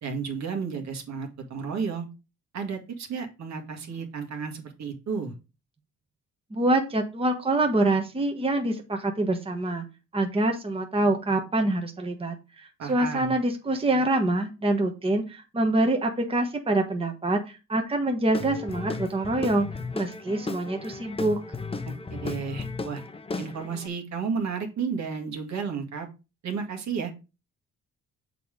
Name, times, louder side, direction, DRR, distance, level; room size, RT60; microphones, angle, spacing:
voice 1, 0.0-2.1 2.5-5.3 12.8-13.3 21.9-23.0 23.4-26.1 26.4-27.1, right 5 dB, 65° right, 4 dB, 1.9 m, -32 dB
voice 2, 6.5-9.8 10.1-19.7 19.9-21.4, right 2 dB, 20° right, 3 dB, 1.3 m, -25 dB
Guitar / Drum, 18.3-23.9, left 3 dB, 20° left, 0.7 m, -35 dB
6.8 x 4.0 x 5.1 m, 0.29 s
cardioid pair, 90°, 30 cm